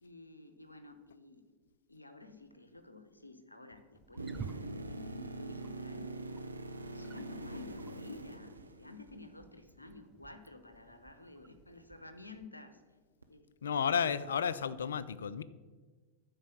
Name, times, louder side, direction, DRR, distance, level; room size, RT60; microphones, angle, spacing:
voice 1, 0.0-1.4 1.9-6.1 6.9-12.8 13.3-14.3, left 3 dB, 85° left, 9 dB, 0.8 m, -52 dB
Wild animals, 3.9-12.5, right 6 dB, 20° right, 0.5 m, -53 dB
sound 1, 4.2-9.2 13.2-13.3, right 2 dB, 80° right, 0.6 m, -43 dB
voice 2, 13.6-15.4, left 7 dB, 65° left, 16 dB, 0.4 m, -32 dB
11.5 x 4.6 x 6.3 m, 1.4 s
figure-of-eight pair, 90°, 0 cm